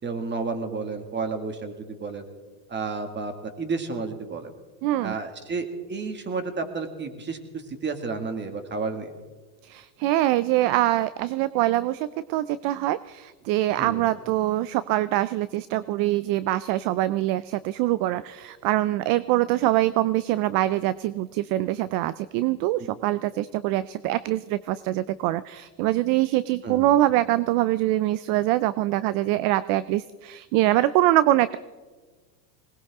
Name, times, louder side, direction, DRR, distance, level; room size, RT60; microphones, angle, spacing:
voice 1, 0.0-2.2 2.7-4.5 5.0-7.4 7.7-9.1 13.8-14.0 26.6-26.9, right 4 dB, 20° right, 7 dB, 2.0 m, -31 dB
voice 2, 4.8-5.2 9.6-31.6, right 15 dB, 45° right, 17 dB, 0.5 m, -24 dB
20.5 x 19.5 x 3.6 m, 1.3 s
supercardioid pair, 125°, 49 cm